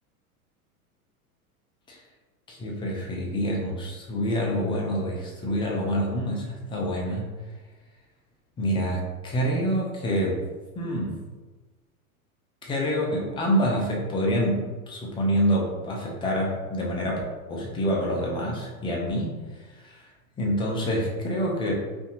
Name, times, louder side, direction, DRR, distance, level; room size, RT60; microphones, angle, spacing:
voice 1, 2.5-7.3 8.6-10.4 10.8-11.2 12.6-17.2 17.5-19.4 19.8-20.0 20.4-21.7, equal, 15° left, -2 dB, 0.3 m, -27 dB
2.5 x 2.5 x 2.7 m, 1.2 s
hypercardioid pair, 105°, 44 cm